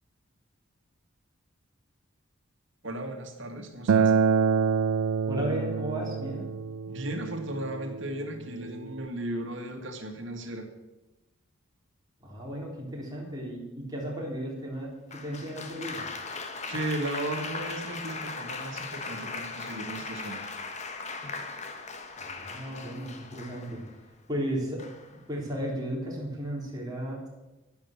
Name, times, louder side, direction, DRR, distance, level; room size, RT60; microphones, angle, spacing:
voice 1, 2.8-4.1 6.9-10.7 16.7-20.5, right 1 dB, 60° right, 4 dB, 2.2 m, -36 dB
Acoustic guitar, 3.9-9.1, right 6 dB, 85° right, 0.4 m, -27 dB
voice 2, 5.3-6.5 12.2-16.0 22.2-23.8 24.3-27.3, equal, 20° right, -3 dB, 3.7 m, -35 dB
Applause, 15.1-24.0 24.8-25.2, left 4 dB, 35° left, 1.2 m, -38 dB
11.5 x 10.5 x 7.4 m, 1.0 s
head